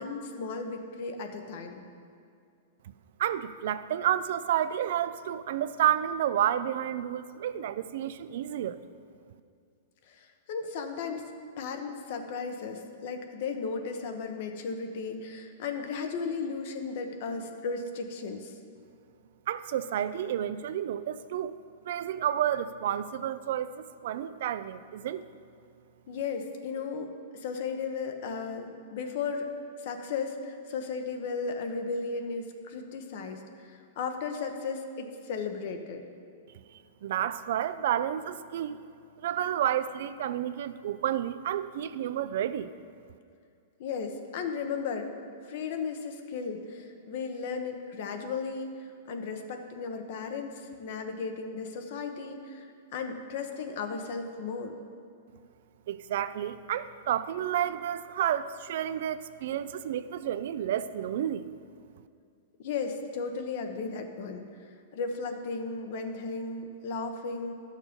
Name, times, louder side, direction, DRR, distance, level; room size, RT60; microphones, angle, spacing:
voice 1, 0.0-1.8 10.1-11.3 11.6-18.5 26.1-29.5 29.8-36.0 43.8-45.1 45.4-54.7 62.6-67.5, left 5 dB, 60° left, 5 dB, 1.1 m, -35 dB
voice 2, 3.2-8.8 19.5-21.6 21.8-23.8 24.0-25.2 37.0-38.8 39.2-42.7 55.9-61.5, right 11 dB, 65° right, 13 dB, 0.4 m, -30 dB
12.0 x 6.4 x 5.2 m, 2.4 s
hypercardioid pair, 130°, 0 cm